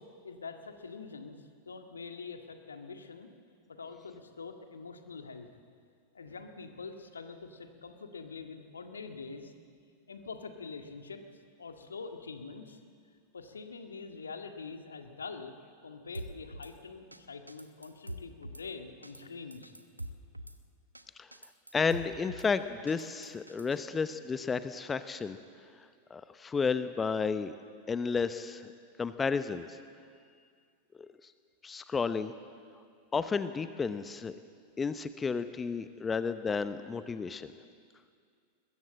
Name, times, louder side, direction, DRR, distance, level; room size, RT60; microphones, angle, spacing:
voice 1, 0.0-3.3 3.7-5.5 6.1-9.5 10.1-11.2 11.6-12.8 13.3-15.6 15.8-19.7, left 4 dB, 70° left, 5 dB, 1.9 m, -45 dB
Drum kit / Snare drum, 16.1-16.7 17.1-17.2 17.5-18.6 19.0-19.2 19.5-20.6 20.9-21.0 21.3-22.5 22.9-23.8, right 1 dB, 85° right, 1.0 m, -44 dB
voice 2, 21.7-25.4 26.1-27.5 27.9-28.7 29.0-29.8 31.0-31.3 31.6-32.3 33.1-34.4 34.8-37.5, left 5 dB, 15° left, 12 dB, 0.8 m, -32 dB
22.0 x 21.0 x 7.6 m, 2.2 s
figure-of-eight pair, 90°, 0 cm